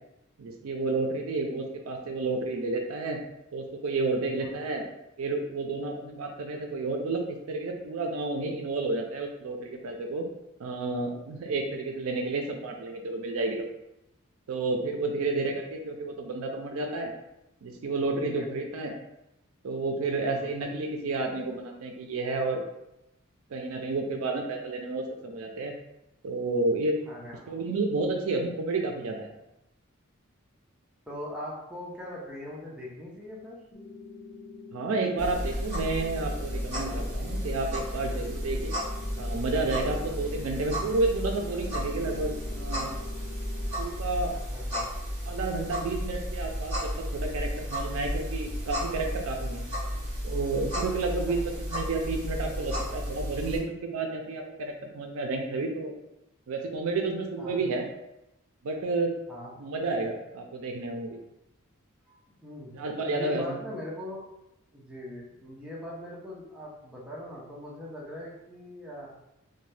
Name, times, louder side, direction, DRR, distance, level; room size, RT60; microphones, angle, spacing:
voice 1, 0.4-3.2 3.5-4.8 5.2-10.3 10.6-13.7 14.5-17.1 17.6-18.9 19.6-22.6 23.5-25.7 26.2-27.0 27.5-29.3 34.7-38.7 39.2-42.9 43.8-44.3 45.3-49.6 50.2-56.0 56.5-57.8 58.6-59.1 59.6-61.2 62.7-63.6, right 3 dB, 70° right, 3 dB, 0.4 m, -31 dB
voice 2, 4.4-4.7 18.3-18.5 20.3-20.5 27.1-27.6 31.1-33.6 44.3-44.9 49.8-49.9 51.3-51.4 57.4-57.6 59.3-59.5 62.1-62.7 63.1-64.3 64.7-69.1, left 1 dB, 5° right, -5 dB, 0.5 m, -41 dB
sound 1, 33.7-43.7, left 4 dB, 45° left, 0.6 m, -46 dB
sound 2, 35.2-53.6, equal, 30° right, 1.4 m, -33 dB
2.6 x 2.1 x 3.2 m, 0.87 s
head